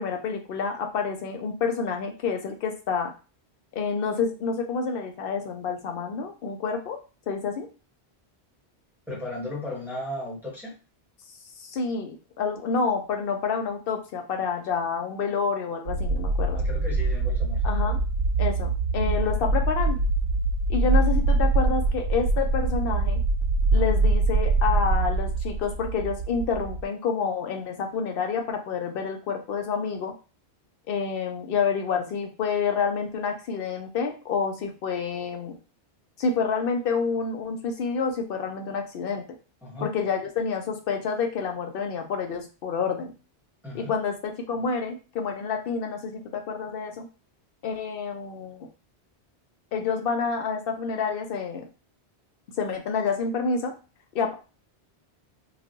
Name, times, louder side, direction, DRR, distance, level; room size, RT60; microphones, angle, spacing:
voice 1, 0.0-3.1 3.8-7.0 7.3-7.7 11.6-16.6 17.6-18.0 18.4-20.0 20.7-23.2 23.7-30.1 30.9-35.6 36.2-39.2 39.8-43.1 43.7-47.1 47.6-48.7 49.7-51.7 52.6-53.7 54.1-54.3, left 5 dB, 60° left, 4 dB, 0.8 m, -28 dB
voice 2, 9.1-10.7 16.5-17.7 39.6-39.9 43.6-44.0, left 1 dB, ahead, -6 dB, 1.0 m, -35 dB
sound 1, 15.9-26.8, right 2 dB, 85° right, 0.9 m, -24 dB
3.1 x 2.4 x 2.6 m, 0.33 s
omnidirectional pair, 1.1 m